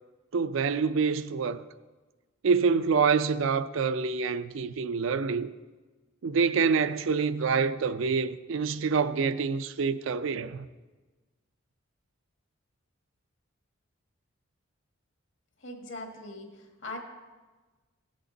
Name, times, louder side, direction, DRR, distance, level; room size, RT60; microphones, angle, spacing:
voice 1, 0.3-1.6 2.4-5.5 6.2-10.7, right 5 dB, 65° right, 0.4 m, -26 dB
voice 2, 15.6-17.0, left 2 dB, 65° left, 1.6 m, -41 dB
16.0 x 6.7 x 4.0 m
head